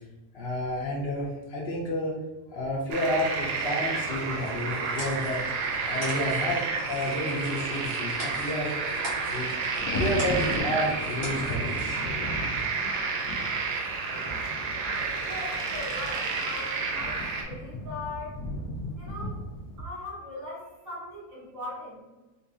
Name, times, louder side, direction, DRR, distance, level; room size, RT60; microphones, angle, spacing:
voice 1, 0.3-2.2 2.5-5.4 5.9-8.7 9.3-9.6 9.9-12.0, left 1 dB, 55° left, -3 dB, 0.7 m, -30 dB
sound 1, 2.9-17.4, right 4 dB, 90° right, 1.2 m, -30 dB
sound 2, 4.4-11.9, equal, 35° right, 1.2 m, -43 dB
Thunder, 8.4-8.7 9.0-19.8, left 1 dB, 85° left, 1.2 m, -37 dB
voice 2, 15.2-18.4 19.0-19.4 19.8-22.0, left 2 dB, 55° right, -8 dB, 1.9 m, -39 dB
4.2 x 2.6 x 2.4 m, 1.1 s
omnidirectional pair, 1.7 m